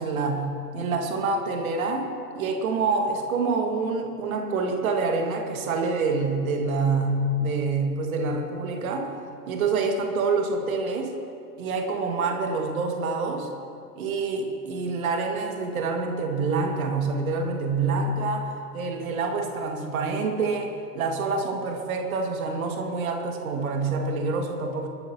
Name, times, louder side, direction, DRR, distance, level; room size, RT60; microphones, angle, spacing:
voice 1, 0.0-2.1 2.4-9.1 9.5-11.1 11.6-13.5 14.0-24.9, right 3 dB, 55° right, 3 dB, 2.2 m, -27 dB
22.0 x 12.0 x 3.0 m, 2.5 s
figure-of-eight pair, 105°, 50 cm